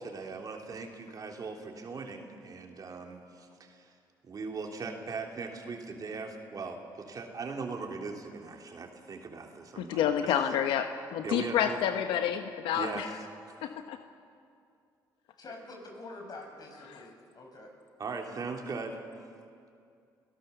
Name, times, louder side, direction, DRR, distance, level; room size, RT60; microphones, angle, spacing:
voice 1, 0.0-3.9 4.2-10.1 11.2-11.8 12.7-13.0 18.0-19.0, right 4 dB, 45° right, 3 dB, 3.0 m, -39 dB
voice 2, 9.8-13.1 13.6-14.0, left 9 dB, 80° left, 7 dB, 1.1 m, -29 dB
voice 3, 15.4-17.7, left 2 dB, 50° left, 1 dB, 6.6 m, -46 dB
29.0 x 17.0 x 6.9 m, 2.4 s
supercardioid pair, 80°, 9 cm